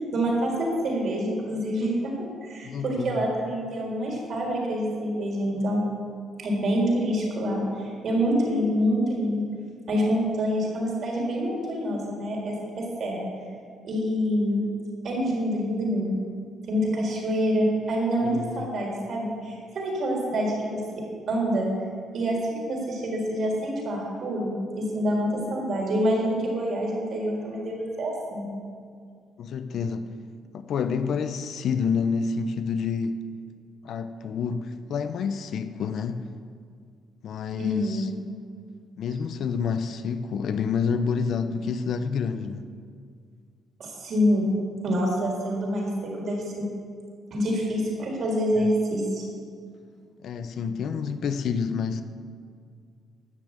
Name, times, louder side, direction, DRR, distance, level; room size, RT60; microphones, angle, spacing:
voice 1, 0.1-5.8 6.4-9.5 9.9-13.3 13.8-14.6 15.0-16.2 16.7-21.7 22.1-28.5 37.6-38.1 43.8-44.5 44.8-46.7 47.3-49.2, equal, 60° right, 4.2 m, -26 dB
voice 2, 2.6-3.3 18.2-18.7 29.4-30.1 30.5-33.2 33.8-36.3 37.2-38.1 39.0-42.7 50.2-52.0, left 6 dB, 70° left, 0.7 m, -28 dB
13.0 x 6.9 x 8.2 m
cardioid pair, 90°, 0 cm